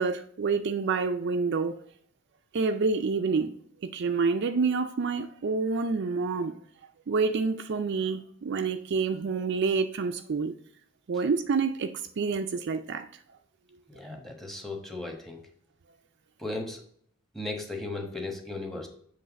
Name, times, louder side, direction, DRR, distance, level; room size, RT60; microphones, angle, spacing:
voice 1, 0.0-1.8 2.5-3.5 3.9-6.5 7.1-10.5 11.1-13.1, right 4 dB, 55° right, 0.4 m, -28 dB
voice 2, 13.9-15.4 16.4-16.8 17.3-18.9, left 2 dB, ahead, 1.1 m, -36 dB
7.9 x 3.4 x 5.1 m
head